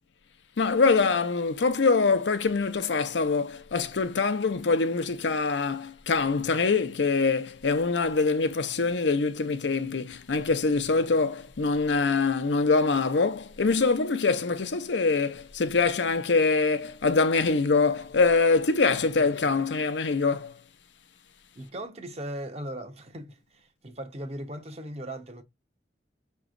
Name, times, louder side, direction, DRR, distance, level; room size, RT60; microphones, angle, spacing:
voice 1, 0.6-20.5, left 4 dB, 80° left, 0.6 m, -24 dB
voice 2, 19.2-19.6 21.6-25.4, right 1 dB, 35° right, 0.9 m, -38 dB
6.0 x 3.1 x 2.5 m
head